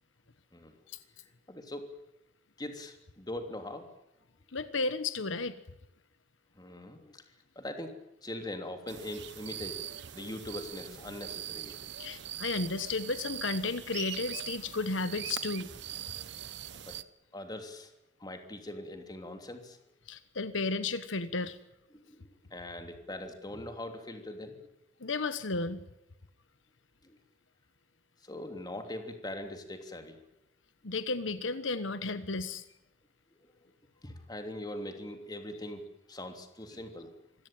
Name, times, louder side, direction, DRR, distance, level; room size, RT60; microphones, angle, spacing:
voice 1, 1.5-1.8 2.6-3.9 6.6-7.2 7.5-9.8 10.1-11.7 16.7-16.9 17.3-17.9 18.2-19.8 21.9-22.2 22.5-24.6 27.0-27.2 28.2-30.2 33.3-33.7 34.0-37.1, left 1 dB, 20° left, 5 dB, 3.1 m, -42 dB
voice 2, 4.5-5.6 12.0-15.7 20.1-21.6 25.0-25.8 30.8-32.6, left 3 dB, 85° left, 12 dB, 1.3 m, -33 dB
sound 1, 8.9-17.0, right 11 dB, 65° right, 0.9 m, -42 dB
25.5 x 16.5 x 9.0 m, 0.92 s
head